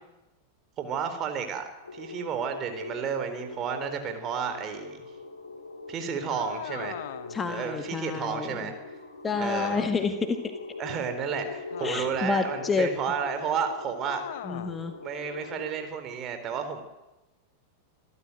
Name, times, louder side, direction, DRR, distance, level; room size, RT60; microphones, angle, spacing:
voice 1, 0.8-1.6 1.9-5.1 5.9-7.0 7.5-8.7 9.4-9.8 10.8-14.2 15.0-16.8, right 7 dB, 30° right, 7 dB, 3.8 m, -32 dB
sound 1, 1.8-15.7, left 3 dB, 75° left, 3.9 m, -41 dB
sound 2, 6.3-7.5 9.3-10.2 11.7-12.4 14.0-14.8, left 12 dB, 55° left, 1.1 m, -40 dB
voice 2, 7.3-8.7 9.2-10.4 11.8-12.9 14.4-14.9, left 4 dB, 15° left, 7 dB, 1.9 m, -29 dB
26.5 x 14.0 x 9.1 m, 1.0 s
figure-of-eight pair, 90°, 0 cm